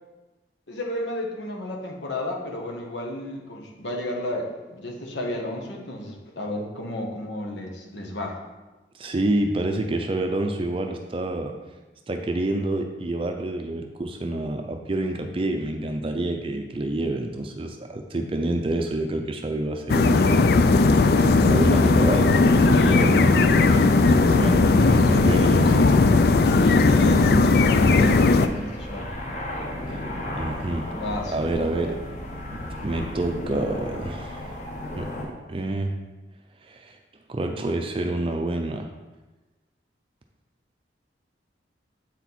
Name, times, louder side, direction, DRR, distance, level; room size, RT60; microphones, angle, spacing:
voice 1, 0.7-8.4 22.7-23.1 26.4-29.1 30.9-31.9, left 1 dB, 80° left, 1 dB, 1.3 m, -32 dB
voice 2, 8.9-11.5 12.1-20.9 21.4-25.9 29.9-30.0 30.3-30.9 31.3-32.0 32.5-34.5 35.0-35.9 36.6-37.0 37.3-38.9, right 1 dB, 30° right, 4 dB, 0.4 m, -28 dB
sound 1, 19.9-28.5, left 3 dB, 55° left, 0.4 m, -17 dB
sound 2, 21.6-35.3, left 1 dB, 40° left, 1.0 m, -35 dB
8.1 x 4.4 x 4.1 m, 1.2 s
head